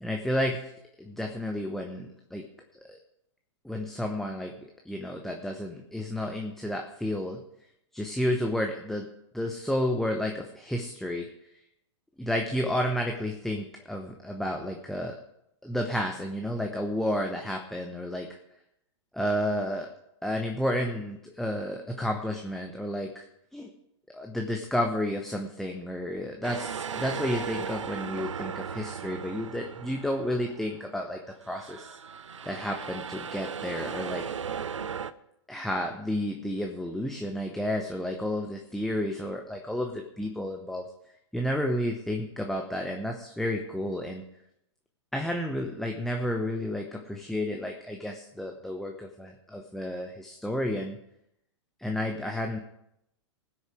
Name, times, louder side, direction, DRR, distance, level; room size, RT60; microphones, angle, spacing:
voice 1, 0.0-0.7 1.0-2.4 2.9-3.0 3.6-4.5 4.8-7.4 7.9-9.1 9.3-11.3 12.2-15.2 15.6-18.4 19.1-19.9 20.2-23.2 23.5-23.7 24.1-32.0 32.4-34.2 35.5-40.8 41.3-44.2 45.1-51.0 51.8-52.6, left 1 dB, ahead, 2 dB, 1.0 m, -31 dB
sound 1, 26.4-31.0 31.4-35.1, right 7 dB, 85° right, 0.6 m, -37 dB
19.5 x 6.5 x 5.0 m, 0.81 s
hypercardioid pair, 110°, 15 cm